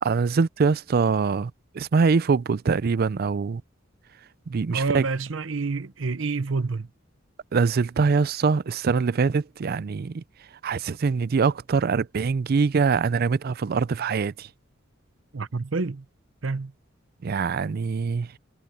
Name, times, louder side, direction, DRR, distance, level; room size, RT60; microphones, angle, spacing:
voice 1, 0.0-3.6 4.5-5.1 7.5-10.2 10.6-14.5 17.2-18.3, right 5 dB, 50° right, 0.4 m, -23 dB
voice 2, 4.7-6.9 15.3-16.0 16.4-16.7, right 4 dB, 70° right, 0.8 m, -28 dB
head